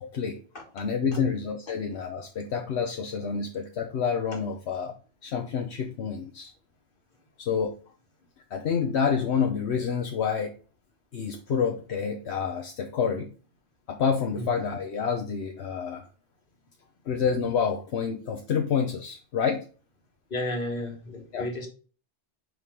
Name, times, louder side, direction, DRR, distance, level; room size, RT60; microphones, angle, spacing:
voice 1, 0.0-0.4 0.7-4.9 5.2-6.5 7.4-7.7 8.5-10.5 11.1-13.3 13.9-16.0 17.1-19.6 21.3-21.5, left 6 dB, 75° left, 4 dB, 1.1 m, -28 dB
voice 2, 1.0-1.3 14.3-14.5 20.3-21.7, left 1 dB, 50° left, 2 dB, 1.8 m, -33 dB
5.7 x 4.9 x 3.6 m, 0.37 s
omnidirectional pair, 1.1 m